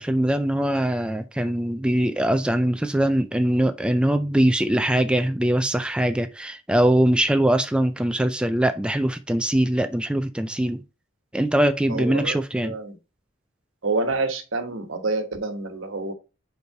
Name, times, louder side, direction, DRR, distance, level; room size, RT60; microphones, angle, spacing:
voice 1, 0.0-10.8 11.3-12.7, right 1 dB, 5° right, 0.3 m, -22 dB
voice 2, 11.9-12.4 12.6-13.0 13.8-16.1, right 3 dB, 75° right, 1.2 m, -27 dB
5.5 x 4.6 x 4.7 m
head